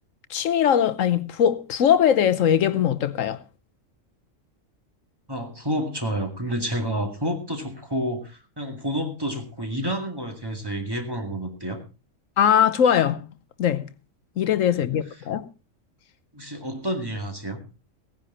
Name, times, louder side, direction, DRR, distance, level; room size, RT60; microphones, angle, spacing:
voice 1, 0.3-3.4 12.4-13.3 13.6-13.9 14.4-15.5, left 9 dB, 80° left, 1.2 m, -21 dB
voice 2, 5.3-11.8 16.3-17.6, equal, 20° right, 2.1 m, -29 dB
17.0 x 10.0 x 4.1 m
omnidirectional pair, 1.3 m